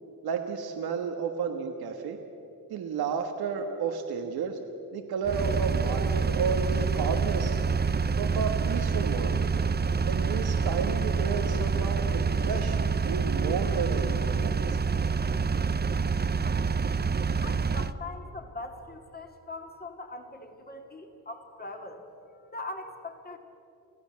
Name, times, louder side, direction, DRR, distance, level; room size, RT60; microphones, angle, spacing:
voice 1, 0.2-2.2 2.7-4.6 4.9-7.6 8.2-9.5 10.0-12.8 13.1-14.8, right 5 dB, 90° right, 5 dB, 1.4 m, -32 dB
Engine, 5.3-17.9, right 5 dB, 25° right, 0.7 m, -27 dB
voice 2, 17.4-22.0 22.5-23.4, left 2 dB, 25° left, 4 dB, 2.4 m, -41 dB
25.5 x 16.0 x 7.4 m, 2.8 s
cardioid pair, 75°, 36 cm